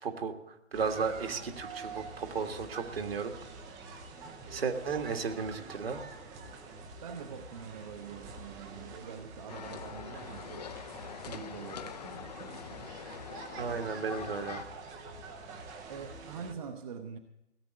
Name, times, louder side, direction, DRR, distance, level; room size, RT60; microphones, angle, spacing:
voice 1, 0.0-3.3 4.5-6.0 13.5-14.6, right 5 dB, 60° right, 6 dB, 1.7 m, -34 dB
sound 1, 0.7-16.5, right 3 dB, 10° right, 0.6 m, -47 dB
voice 2, 7.0-10.7 11.3-12.9 15.9-17.2, right 7 dB, 35° right, 5 dB, 0.9 m, -45 dB
sound 2, 9.5-14.6, left 8 dB, 35° left, 0.7 m, -44 dB
17.0 x 8.1 x 7.8 m, 0.88 s
figure-of-eight pair, 130°, 34 cm